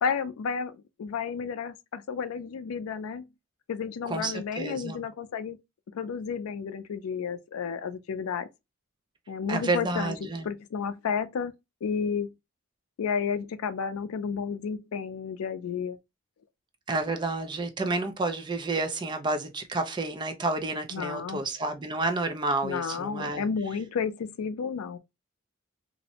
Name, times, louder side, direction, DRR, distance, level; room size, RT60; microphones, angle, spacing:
voice 1, 0.0-3.3 3.7-5.6 5.9-8.5 9.3-10.1 10.4-11.5 11.8-12.3 13.0-16.0 20.9-21.4 22.6-25.0, left 6 dB, 85° left, 0.4 m, -32 dB
voice 2, 4.1-5.0 9.5-10.5 16.9-23.5, right 2 dB, 20° right, 0.3 m, -30 dB
2.5 x 2.0 x 2.7 m
head